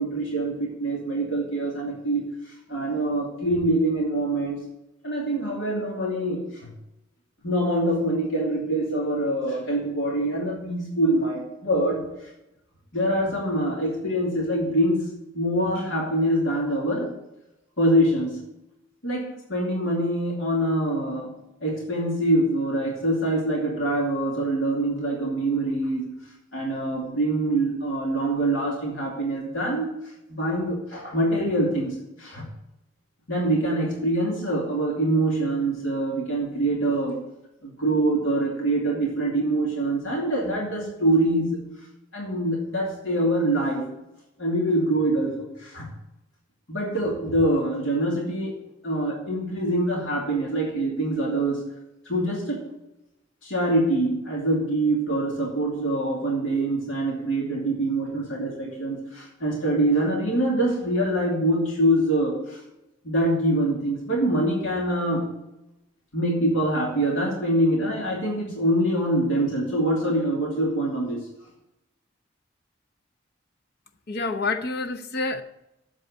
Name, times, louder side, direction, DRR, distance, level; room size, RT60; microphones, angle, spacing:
voice 1, 0.0-2.2 2.7-4.6 5.0-6.4 7.4-12.0 12.9-17.1 17.8-18.4 19.0-21.3 21.6-26.1 26.5-29.9 30.3-32.4 33.3-37.2 37.6-41.6 42.1-43.8 44.4-45.9 46.7-48.5 48.8-51.7 52.1-52.6 53.4-62.6 63.0-65.3 66.1-71.2, right 1 dB, 75° left, 2.6 m, -24 dB
voice 2, 74.1-75.4, left 3 dB, 55° left, 0.8 m, -28 dB
7.9 x 7.5 x 8.1 m
head